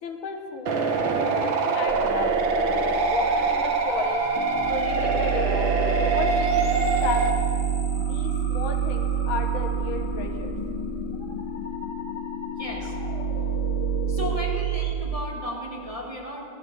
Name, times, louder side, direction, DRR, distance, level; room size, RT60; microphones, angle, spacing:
voice 1, 0.0-0.8 1.1-2.4 3.1-5.7 6.1-7.5 8.0-10.5, left 4 dB, 85° left, 5 dB, 2.0 m, -34 dB
sound 1, 0.7-7.3, right 4 dB, 75° right, 1.9 m, -24 dB
sound 2, 1.9-14.9, right 10 dB, 15° left, 1.4 m, -29 dB
sound 3, 4.4-14.4, left 8 dB, 65° left, 0.8 m, -35 dB
voice 2, 12.6-12.9 14.1-16.4, left 1 dB, 20° right, -3 dB, 1.5 m, -34 dB
16.0 x 11.5 x 6.7 m, 2.6 s
omnidirectional pair, 2.2 m